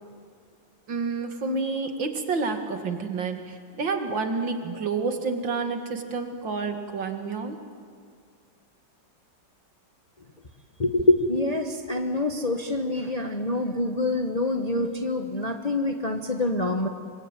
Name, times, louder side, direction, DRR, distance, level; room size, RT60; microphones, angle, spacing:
voice 1, 0.9-7.6, right 4 dB, 80° right, 5 dB, 2.8 m, -29 dB
voice 2, 10.8-16.9, left 2 dB, 25° left, 5 dB, 1.1 m, -25 dB
25.5 x 24.0 x 9.1 m, 2.1 s
omnidirectional pair, 2.0 m